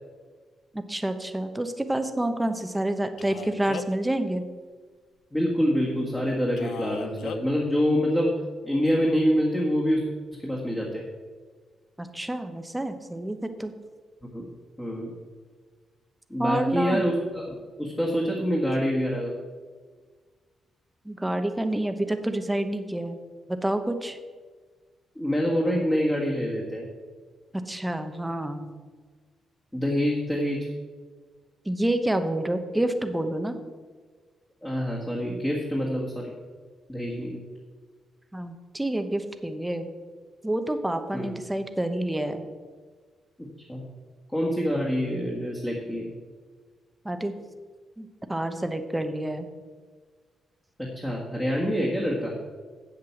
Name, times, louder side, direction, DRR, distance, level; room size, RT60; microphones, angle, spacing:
voice 1, 0.7-4.4 12.0-13.7 16.4-17.1 21.0-23.2 23.5-24.2 27.5-28.7 31.6-33.6 38.3-39.9 40.4-42.5 47.0-47.3 48.0-49.5, right 1 dB, 10° right, 8 dB, 0.8 m, -28 dB
Male speech man speaking, 3.2-4.1 6.6-7.4, left 8 dB, 85° left, 0.5 m, -38 dB
voice 2, 5.3-8.4 8.6-10.0 10.3-11.1 14.3-14.4 14.8-15.1 16.3-19.4 25.1-26.9 29.7-30.7 34.6-36.3 36.9-37.4 41.1-41.3 43.4-43.8 44.3-46.1 50.8-52.3, equal, 10° left, -4 dB, 1.7 m, -26 dB
8.2 x 7.7 x 7.1 m, 1.5 s
cardioid pair, 130°, 0 cm